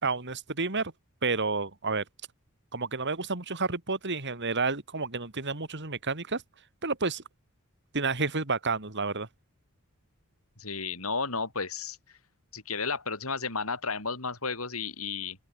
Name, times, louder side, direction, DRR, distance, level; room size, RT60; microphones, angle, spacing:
voice 1, 0.0-0.9 1.2-2.0 2.7-6.4 6.8-7.2 7.9-9.3, right 4 dB, 55° right, 3.3 m, -30 dB
voice 2, 10.6-12.0 12.5-15.4, left 4 dB, 75° left, 7.0 m, -33 dB
open air
head